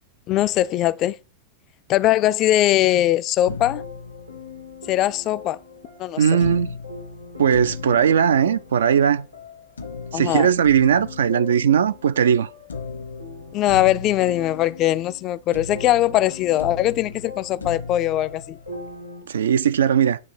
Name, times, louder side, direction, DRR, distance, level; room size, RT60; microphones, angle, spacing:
voice 1, 0.3-1.2 1.9-3.8 4.9-5.6 6.0-6.4 10.1-10.5 13.5-18.6, left 14 dB, 35° left, 0.4 m, -21 dB
sound 1, 3.5-5.0 6.4-9.0 9.8-12.3 12.7-15.3 15.5-19.0, left 4 dB, 70° left, 0.9 m, -37 dB
sound 2, 3.7-19.2, left 4 dB, 85° right, 2.3 m, -41 dB
voice 2, 6.2-6.8 7.4-9.3 10.1-12.5 19.3-20.2, right 8 dB, 65° right, 0.4 m, -18 dB
9.3 x 3.2 x 6.1 m
figure-of-eight pair, 90°, 0 cm